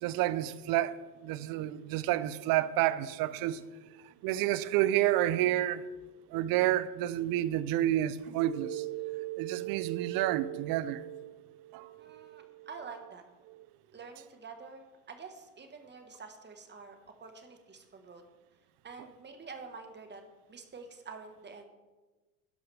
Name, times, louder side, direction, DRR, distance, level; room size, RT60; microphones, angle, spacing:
voice 1, 0.0-0.9 1.2-3.6 4.2-5.8 6.3-11.4 11.7-12.7, right 14 dB, 55° right, 0.7 m, -30 dB
voice 2, 12.0-13.2 13.9-18.2 18.8-20.2 20.5-21.6, right 4 dB, 25° right, 1.4 m, -48 dB
11.5 x 11.0 x 3.4 m
supercardioid pair, 95°, 42 cm